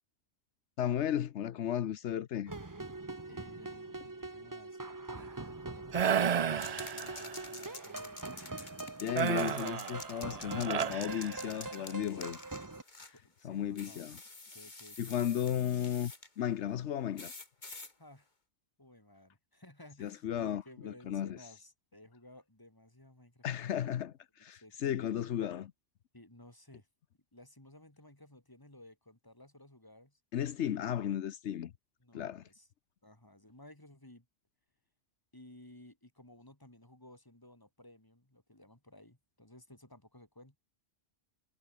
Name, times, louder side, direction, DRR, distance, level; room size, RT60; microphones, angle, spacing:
voice 1, 0.8-2.5 9.0-12.4 13.4-14.2 15.0-17.3 20.0-21.4 23.4-24.1 24.4-25.7 30.3-31.7 32.1-32.4, left 10 dB, 80° left, 1.1 m, -34 dB
sound 1, 2.5-12.8, right 2 dB, 20° right, 1.0 m, -43 dB
voice 2, 3.2-4.8 5.1-8.2 13.1-14.1 14.5-15.9 18.0-18.3 18.8-23.8 24.5-25.1 26.1-26.9 27.3-30.2 32.0-32.7 33.0-34.3 35.3-40.6, left 1 dB, 20° left, 3.2 m, -57 dB
sound 2, 5.9-7.5 9.2-11.8, right 8 dB, 45° right, 0.5 m, -33 dB
sound 3, 6.6-13.2 13.8-16.3 17.2-17.9, left 3 dB, 40° left, 2.6 m, -49 dB
omnidirectional pair, 1.2 m